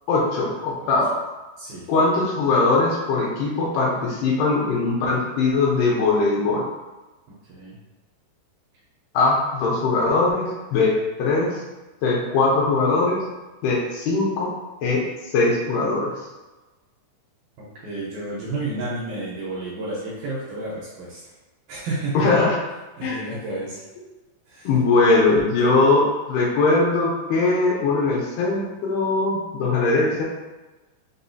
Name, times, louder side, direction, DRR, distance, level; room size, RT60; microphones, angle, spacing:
voice 1, 0.1-1.1 1.9-6.7 9.1-11.6 12.0-13.2 13.6-14.5 14.8-15.0 15.3-16.1 22.1-22.6 23.0-23.2 24.6-26.0 26.3-30.2, left 3 dB, 80° left, -3 dB, 2.7 m, -20 dB
voice 2, 1.6-1.9 7.5-7.8 17.6-21.2 21.7-22.3 23.0-23.8 24.5-24.7 25.3-25.8, right 2 dB, 75° right, -7 dB, 2.4 m, -31 dB
6.3 x 2.6 x 2.6 m, 1.1 s
omnidirectional pair, 4.9 m